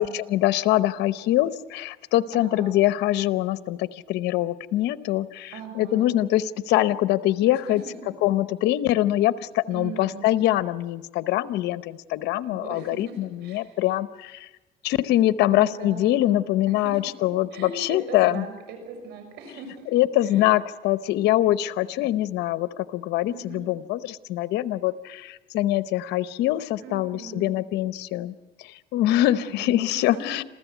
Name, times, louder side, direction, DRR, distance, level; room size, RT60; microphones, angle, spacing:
voice 1, 0.0-7.8 8.2-14.5 14.8-18.5 19.9-28.3 28.6-30.4, left 14 dB, 85° left, 14 dB, 0.9 m, -24 dB
voice 2, 2.3-2.8 5.5-6.1 7.5-7.9 9.7-10.2 12.4-13.8 15.5-19.9 20.2-20.5 23.3-23.7 26.8-27.5 29.3-30.2, right 5 dB, 85° right, 5 dB, 6.1 m, -40 dB
27.5 x 15.0 x 8.2 m, 1.2 s
cardioid pair, 110°, 17 cm